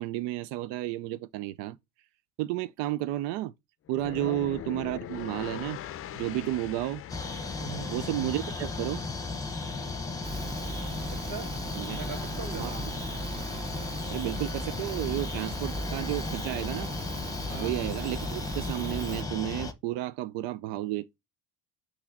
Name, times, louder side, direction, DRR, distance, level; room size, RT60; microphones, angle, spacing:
voice 1, 0.0-1.8 2.4-3.5 3.9-5.8 6.1-7.0 7.9-9.0 11.7-12.0 12.6-12.9 14.1-16.9 17.6-21.2, right 15 dB, 85° right, 0.6 m, -32 dB
sound 1, 3.9-9.0, left 11 dB, 35° left, 0.5 m, -41 dB
sound 2, 7.1-19.7, left 3 dB, 10° left, 0.8 m, -35 dB
voice 2, 7.6-7.9 11.1-11.6 11.9-12.8 17.5-17.7, right 5 dB, 50° right, 2.2 m, -40 dB
sound 3, 10.2-19.2, right 2 dB, 15° right, 0.5 m, -38 dB
6.3 x 3.0 x 5.8 m
cardioid pair, 140°, 41 cm